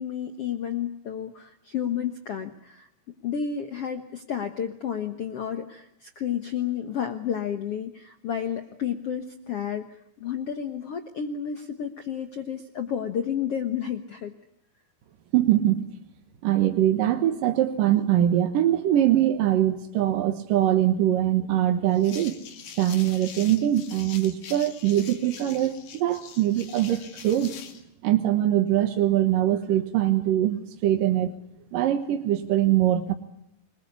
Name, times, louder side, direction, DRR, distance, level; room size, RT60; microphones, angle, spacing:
voice 1, 0.0-2.9 3.2-9.9 10.2-14.3, left 8 dB, 80° left, 7 dB, 1.3 m, -31 dB
voice 2, 15.3-15.8 16.4-22.4 22.8-27.5 28.0-31.3 31.7-33.1, right 12 dB, 65° right, 7 dB, 2.6 m, -22 dB
sound 1, 21.9-27.8, left 7 dB, 55° left, 3.2 m, -44 dB
28.0 x 21.0 x 8.3 m, 0.80 s
omnidirectional pair, 4.7 m